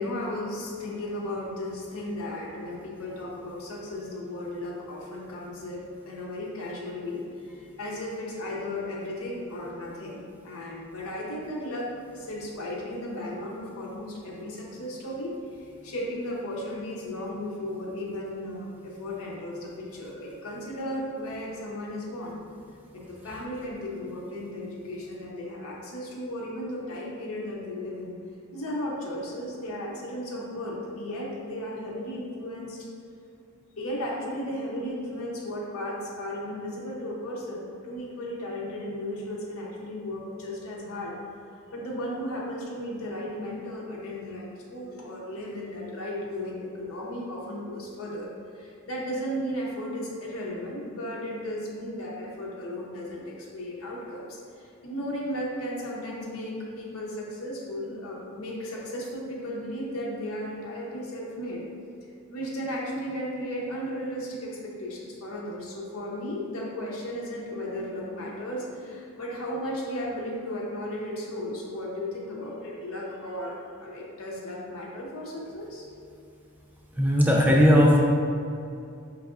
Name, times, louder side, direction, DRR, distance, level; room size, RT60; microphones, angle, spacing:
voice 1, 0.0-7.2 7.8-15.3 15.8-22.4 22.9-28.2 28.5-32.9 33.8-41.2 41.7-48.3 48.6-61.6 62.3-75.9, left 1 dB, 90° left, -3 dB, 0.7 m, -35 dB
voice 2, 77.0-78.0, equal, 10° right, -2 dB, 0.4 m, -18 dB
4.7 x 3.3 x 2.4 m, 2.5 s
head